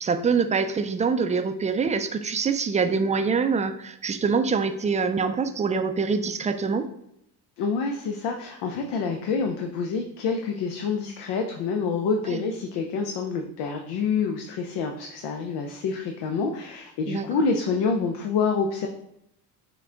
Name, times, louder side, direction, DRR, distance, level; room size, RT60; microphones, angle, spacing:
voice 1, 0.0-6.9 12.3-12.4 17.1-17.2, right 5 dB, 20° right, 8 dB, 0.3 m, -25 dB
voice 2, 7.6-18.9, left 5 dB, 80° left, 3 dB, 0.6 m, -27 dB
5.9 x 2.2 x 3.7 m, 0.78 s
cardioid pair, 90°, 39 cm